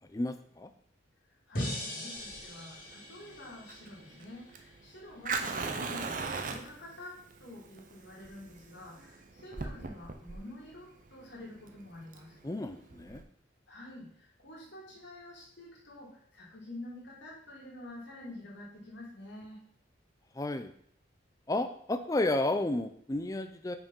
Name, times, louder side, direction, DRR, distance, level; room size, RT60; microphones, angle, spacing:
voice 1, 0.1-0.7 12.4-13.2 20.3-20.7 21.5-23.8, left 2 dB, 15° left, 9 dB, 0.4 m, -32 dB
voice 2, 1.5-12.4 13.7-19.6, left 1 dB, 65° left, -4 dB, 2.3 m, -48 dB
sound 1, 1.5-4.7, equal, 45° left, 2.4 m, -40 dB
Fire, 2.2-13.2, right 4 dB, 40° right, 0.6 m, -40 dB
5.7 x 4.5 x 5.3 m, 0.63 s
head